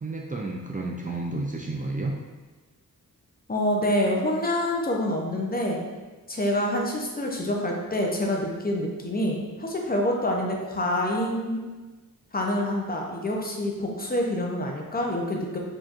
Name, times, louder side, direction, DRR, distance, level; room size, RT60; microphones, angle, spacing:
voice 1, 0.0-2.1, right 2 dB, 25° right, -1 dB, 0.3 m, -31 dB
voice 2, 3.5-5.8 6.3-11.6 12.3-15.6, left 1 dB, 25° left, 0 dB, 0.6 m, -26 dB
4.8 x 2.9 x 2.4 m, 1.3 s
wide cardioid pair, 80°, 35 cm